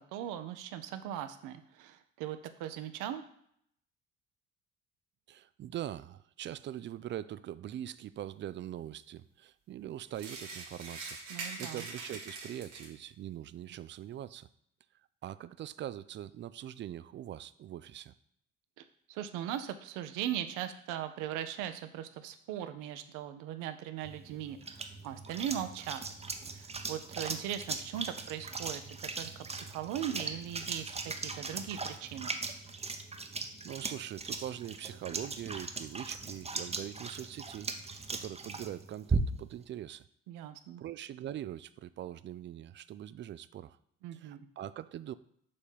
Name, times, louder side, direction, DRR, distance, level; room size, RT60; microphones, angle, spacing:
voice 1, 0.0-3.3 11.3-11.9 18.8-26.0 26.5-32.4 40.3-40.8 44.0-44.5, right 11 dB, 60° right, 9 dB, 0.7 m, -39 dB
voice 2, 5.3-14.5 15.2-18.1 33.4-37.7 38.1-40.0 40.8-43.8 44.1-45.1, right 11 dB, 35° right, 15 dB, 0.4 m, -42 dB
sound 1, 10.1-13.1, right 3 dB, 80° right, 1.3 m, -43 dB
sound 2, 24.0-39.6, right 4 dB, 15° right, 0.8 m, -39 dB
6.8 x 4.1 x 5.3 m, 0.69 s
figure-of-eight pair, 50°, 35 cm